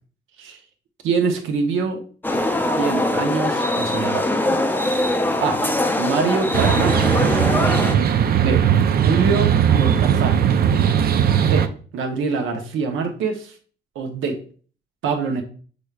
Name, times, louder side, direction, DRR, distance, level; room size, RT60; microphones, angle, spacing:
voice 1, 1.0-2.0 2.8-4.3 5.4-5.6 6.0-7.5 8.4-8.6 9.0-10.5 11.4-11.7 11.9-13.6 13.9-14.4 15.0-15.4, right 5 dB, 80° right, 4 dB, 1.0 m, -24 dB
sound 1, 2.2-8.0, left 1 dB, 10° left, 0.5 m, -22 dB
sound 2, 6.5-11.7, right 8 dB, 50° right, 0.5 m, -18 dB
6.2 x 3.3 x 2.4 m, 0.41 s
cardioid pair, 90°, 20 cm